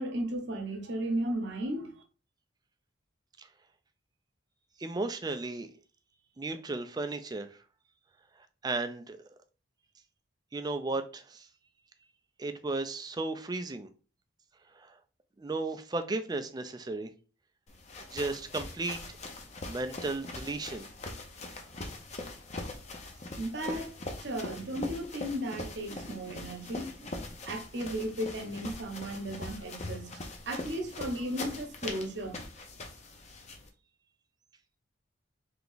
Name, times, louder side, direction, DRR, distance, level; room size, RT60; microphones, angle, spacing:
voice 1, 0.0-1.9 23.4-23.9 24.2-32.4, right 1 dB, 55° right, 0.8 m, -35 dB
voice 2, 4.8-5.7 6.4-7.5 8.6-9.2 10.5-11.5 12.4-13.9 15.4-17.1 18.1-19.0 19.6-20.9, right 3 dB, 20° right, 0.4 m, -34 dB
sound 1, 17.7-33.7, left 2 dB, 35° left, 0.6 m, -42 dB
3.4 x 2.9 x 3.9 m
head